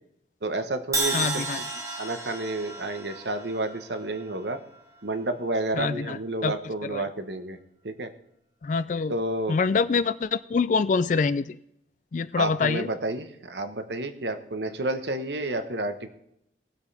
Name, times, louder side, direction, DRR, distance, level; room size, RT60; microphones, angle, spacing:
voice 1, 0.4-1.7 2.0-4.6 5.0-7.6 7.8-8.1 9.1-9.6 12.4-16.1, right 2 dB, 75° right, 8 dB, 1.1 m, -30 dB
Crash cymbal, 0.9-5.0, right 2 dB, 15° right, 1.3 m, -33 dB
voice 2, 1.1-1.6 5.7-6.5 6.9-7.0 8.6-9.2 9.5-11.6 12.1-12.9, left 5 dB, 45° left, 14 dB, 0.3 m, -25 dB
19.5 x 8.1 x 3.4 m, 0.76 s
head